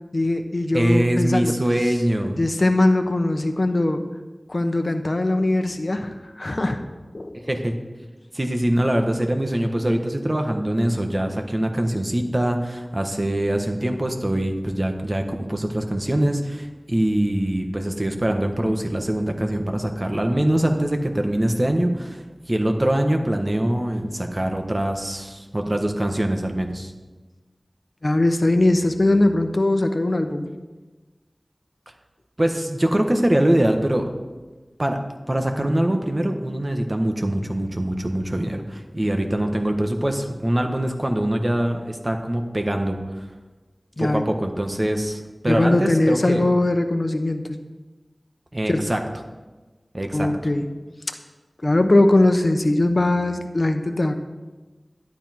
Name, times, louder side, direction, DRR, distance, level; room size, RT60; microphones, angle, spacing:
voice 1, 0.1-1.5 2.4-4.0 4.5-6.8 7.1-7.4 28.0-30.5 44.0-44.2 45.5-47.6 48.7-48.8 50.1-50.7 51.6-54.1, left 2 dB, 55° left, 7 dB, 1.0 m, -20 dB
voice 2, 0.7-2.4 7.4-7.7 8.3-22.2 22.5-26.9 32.4-34.1 34.8-35.0 35.3-43.0 44.0-46.4 48.5-49.0 49.9-50.3, right 1 dB, 35° right, 4 dB, 1.5 m, -23 dB
12.0 x 11.5 x 4.5 m, 1.2 s
wide cardioid pair, 40°, 0 cm